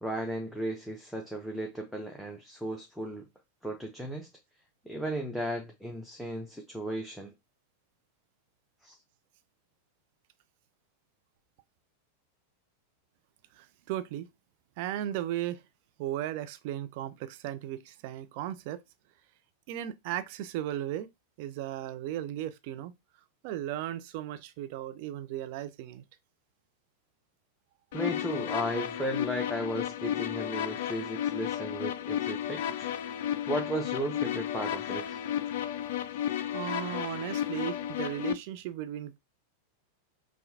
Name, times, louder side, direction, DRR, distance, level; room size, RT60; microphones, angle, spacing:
voice 1, 0.0-3.2 3.6-4.3 4.8-7.3 8.8-9.0 27.9-32.9 33.5-35.2 36.6-36.7, equal, 5° left, 0.6 m, -35 dB
voice 2, 13.5-14.3 14.8-15.6 16.0-18.8 19.7-21.1 21.4-22.9 23.4-26.0 35.8-35.9 36.5-39.2, right 12 dB, 45° right, 0.5 m, -36 dB
sound 1, 27.9-38.3, left 10 dB, 55° left, 0.3 m, -33 dB
5.5 x 2.3 x 2.7 m
figure-of-eight pair, 90°, 0 cm